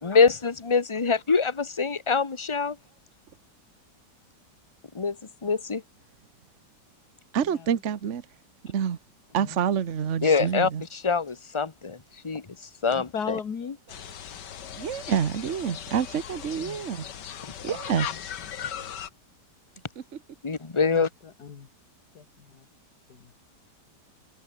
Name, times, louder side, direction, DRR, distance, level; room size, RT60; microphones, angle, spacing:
voice 1, 0.0-2.8 4.9-5.2 5.4-5.8 10.2-12.0 12.2-12.4 12.8-13.4 20.4-21.1, left 5 dB, 20° left, 1.2 m, -24 dB
voice 2, 7.3-8.2 8.6-9.0 9.3-10.8 14.7-17.0 17.6-18.1, right 8 dB, 45° right, 1.3 m, -27 dB
voice 3, 12.9-13.8 16.6-16.8 18.1-18.2 20.8-21.7 22.1-22.7 23.1-23.3, left 6 dB, 65° left, 2.3 m, -37 dB
sound 1, 13.9-19.1, left 9 dB, 85° left, 1.9 m, -38 dB
omnidirectional pair, 1.8 m